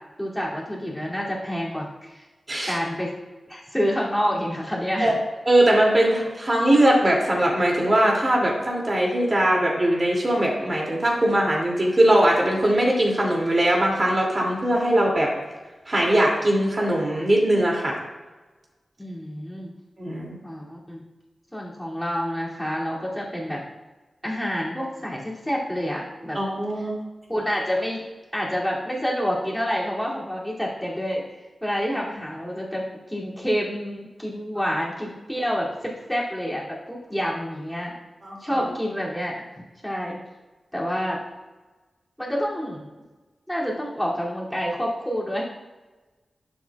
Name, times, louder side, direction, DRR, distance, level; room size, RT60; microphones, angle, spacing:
voice 1, 0.2-2.3 2.7-3.1 3.5-5.2 19.0-19.7 20.4-21.0 21.5-23.6 24.2-26.4 27.3-28.0 28.3-31.2 31.6-37.9 38.4-39.3 39.8-40.2 40.7-41.2 42.2-42.9 43.5-45.4, equal, 5° left, -5 dB, 2.7 m, -28 dB
voice 2, 5.5-15.3 15.9-18.0 20.0-20.4 26.3-27.0 38.2-38.7, right 1 dB, 40° right, -2 dB, 2.6 m, -21 dB
11.5 x 8.0 x 2.4 m, 1.2 s
cardioid pair, 65°, 0 cm